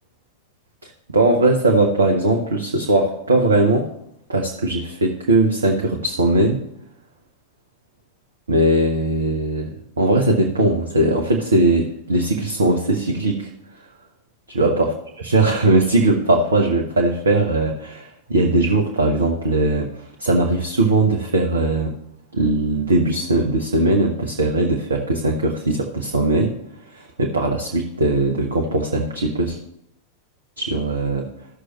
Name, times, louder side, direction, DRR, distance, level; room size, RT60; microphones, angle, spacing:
voice 1, 0.8-3.9 4.3-6.6 8.5-13.5 14.6-14.9 15.2-19.9 20.2-21.9 22.3-26.5 26.9-29.6 30.6-31.3, right 2 dB, 75° right, 1 dB, 0.9 m, -19 dB
14.5 x 6.3 x 3.0 m, 0.79 s
figure-of-eight pair, 90°, 0 cm